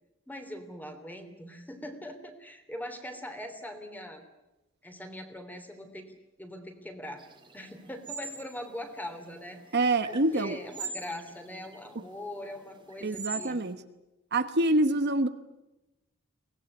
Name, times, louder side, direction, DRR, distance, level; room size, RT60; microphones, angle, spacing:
voice 1, 0.3-4.2 4.8-7.2 7.5-9.6 10.1-13.6, left 1 dB, 10° left, 7 dB, 3.1 m, -42 dB
sound 1, 7.2-13.7, right 4 dB, 20° right, 2.4 m, -44 dB
voice 2, 9.7-10.6 11.9-12.0 13.0-13.8 14.3-15.3, right 2 dB, 50° right, 9 dB, 1.2 m, -26 dB
23.5 x 19.0 x 9.8 m, 0.99 s
head